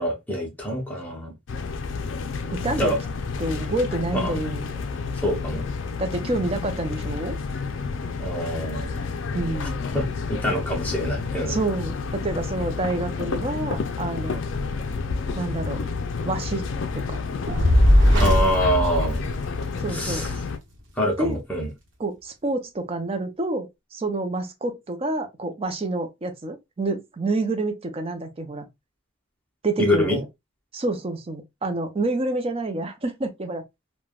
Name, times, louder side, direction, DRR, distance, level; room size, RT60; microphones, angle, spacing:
voice 1, 0.0-1.3 2.8-3.0 4.1-4.3 5.2-5.6 8.2-8.9 9.9-11.6 18.2-19.2 19.9-20.3 21.0-21.7 29.8-30.2, equal, 10° left, 0.8 m, -25 dB
sound 1, 1.5-20.6, left 4 dB, 60° left, 0.4 m, -30 dB
voice 2, 2.5-2.9 3.4-4.7 6.0-7.4 9.3-9.8 11.5-14.4 15.3-15.8 16.3-16.7 16.9-17.2 19.8-20.3 21.2-21.4 22.0-28.6 29.6-30.3 30.7-33.6, right 2 dB, 30° right, 0.4 m, -28 dB
Fire, 17.5-19.9, left 1 dB, 60° right, 0.9 m, -19 dB
3.3 x 2.1 x 2.3 m
head